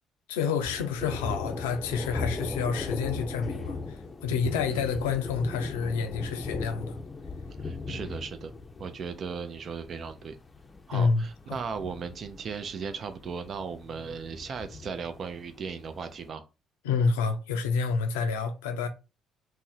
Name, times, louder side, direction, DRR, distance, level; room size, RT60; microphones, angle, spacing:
voice 1, 0.3-7.0 10.9-11.2 16.8-18.9, left 5 dB, 85° left, 0.4 m, -28 dB
Thunder, 0.6-16.2, left 3 dB, 25° left, 0.5 m, -38 dB
voice 2, 7.6-8.5 8.8-10.4 10.9-16.4, right 5 dB, 50° right, 0.4 m, -37 dB
2.6 x 2.0 x 3.8 m
hypercardioid pair, 55°, 0 cm